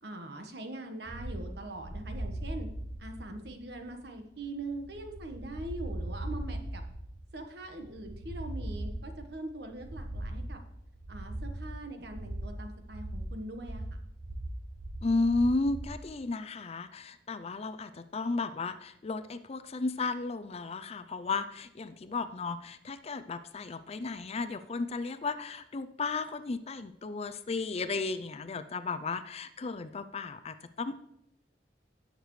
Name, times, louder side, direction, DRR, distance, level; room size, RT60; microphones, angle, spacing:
voice 1, 0.0-2.7 3.0-6.8 7.3-10.6 11.1-13.8, right 2 dB, 65° right, 5 dB, 1.3 m, -42 dB
sound 1, 1.1-16.0, right 1 dB, 45° right, 1.0 m, -40 dB
voice 2, 15.0-31.0, left 3 dB, 35° left, 12 dB, 0.4 m, -34 dB
16.5 x 6.7 x 3.2 m, 0.79 s
head